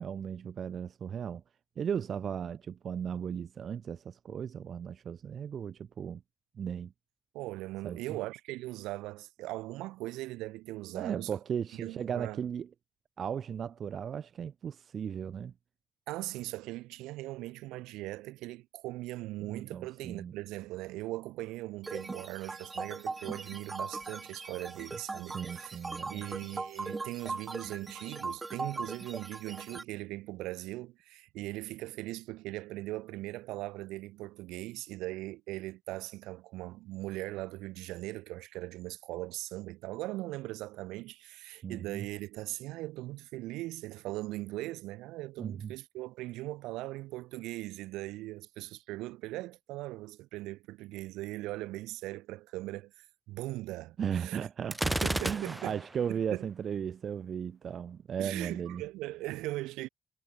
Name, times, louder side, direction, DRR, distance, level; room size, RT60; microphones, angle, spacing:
voice 1, 0.0-1.4 1.8-6.2 6.5-6.9 7.8-8.0 10.9-12.7 13.2-15.5 19.4-20.3 25.3-26.2 41.6-42.1 45.4-45.7 54.0-55.0 55.3-58.8, right 8 dB, 60° right, 1.0 m, -36 dB
voice 2, 7.3-11.4 11.7-12.4 16.1-25.8 26.1-54.5 54.8-55.8 56.1-56.5 58.2-59.9, right 18 dB, 85° right, 1.8 m, -40 dB
sound 1, 21.8-29.8, right 3 dB, 35° right, 1.5 m, -40 dB
Gunshot gunfire, 54.7-55.9, right 1 dB, 10° right, 0.4 m, -32 dB
hypercardioid pair, 45°, 0 cm